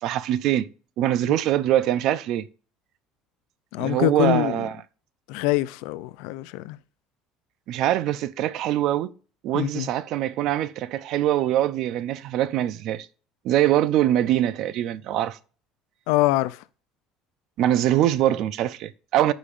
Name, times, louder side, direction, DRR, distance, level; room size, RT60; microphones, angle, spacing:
voice 1, 0.0-0.7 1.0-2.5 3.8-4.7 7.7-9.1 9.4-13.1 13.4-15.4 17.6-19.3, right 12 dB, 60° right, 0.5 m, -23 dB
voice 2, 3.7-4.6 5.3-6.8 9.5-9.9 16.1-16.6, left 16 dB, 85° left, 0.5 m, -24 dB
15.0 x 5.1 x 2.5 m
cardioid pair, 135°, 0 cm